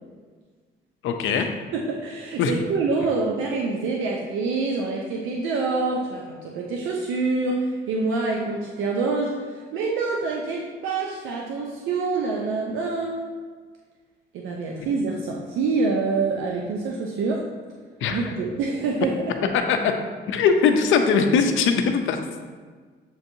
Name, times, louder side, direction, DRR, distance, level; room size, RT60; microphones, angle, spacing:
voice 1, 1.0-1.5 2.4-2.5 18.0-18.3 19.7-19.9 20.3-22.2, left 6 dB, 80° left, 6 dB, 0.5 m, -20 dB
voice 2, 1.7-13.2 14.3-17.4 18.1-19.5, right 3 dB, 80° right, -1 dB, 0.5 m, -26 dB
7.3 x 2.7 x 2.6 m, 1.5 s
cardioid pair, 90°, 20 cm